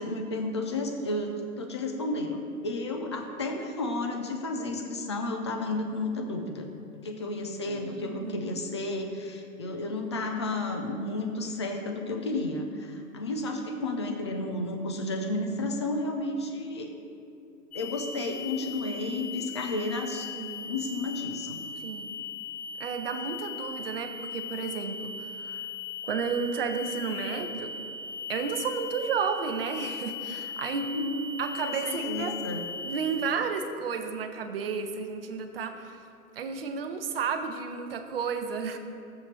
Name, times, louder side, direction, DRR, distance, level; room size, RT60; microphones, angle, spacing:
voice 1, 0.0-6.7 7.0-16.9 17.7-20.3 20.7-21.6 30.9-31.2 31.6-32.6, left 2 dB, 20° left, 4 dB, 0.5 m, -32 dB
voice 2, 7.7-8.4 20.3-20.7 21.8-22.2 22.8-25.6 26.0-27.7 28.3-30.9 31.4-32.4 32.8-36.0 36.4-38.8, right 6 dB, 40° right, 6 dB, 0.9 m, -32 dB
sound 1, 17.7-33.3, left 4 dB, 70° left, 1.1 m, -38 dB
14.5 x 7.7 x 3.3 m, 2.6 s
hypercardioid pair, 150°, 45 cm